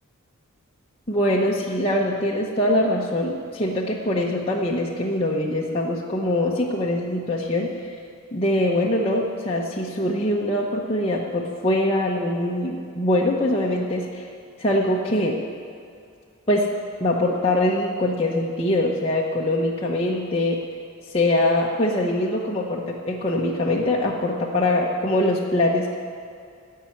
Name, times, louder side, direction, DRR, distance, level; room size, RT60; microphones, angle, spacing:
voice 1, 1.1-7.7 8.3-14.3 14.6-15.4 16.5-16.7 17.0-20.6 21.1-26.0, left 1 dB, 30° left, -4 dB, 1.0 m, -23 dB
17.0 x 5.7 x 9.2 m, 2.4 s
head